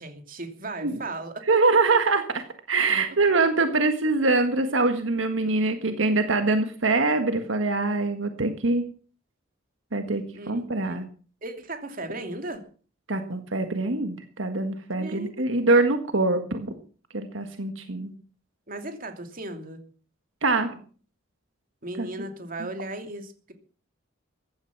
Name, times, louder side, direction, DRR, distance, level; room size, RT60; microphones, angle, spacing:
voice 1, 0.0-1.6 10.3-11.0 11.4-12.6 14.9-15.3 18.7-19.8 21.8-23.5, right 2 dB, 45° right, 6 dB, 2.8 m, -36 dB
voice 2, 1.5-2.4 2.7-8.8 9.9-11.0 13.1-16.7 17.1-18.1 20.4-20.8 22.0-22.1 22.6-22.7, right 3 dB, 80° right, 7 dB, 1.7 m, -24 dB
15.5 x 11.5 x 6.0 m, 0.41 s
head